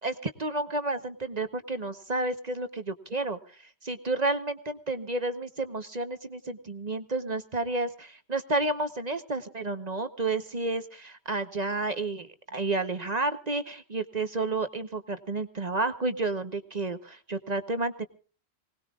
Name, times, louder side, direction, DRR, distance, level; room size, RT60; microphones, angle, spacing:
voice 1, 0.0-3.4 3.8-18.0, right 2 dB, 40° right, 9 dB, 1.1 m, -31 dB
25.5 x 19.0 x 2.4 m, 0.38 s
omnidirectional pair, 1.1 m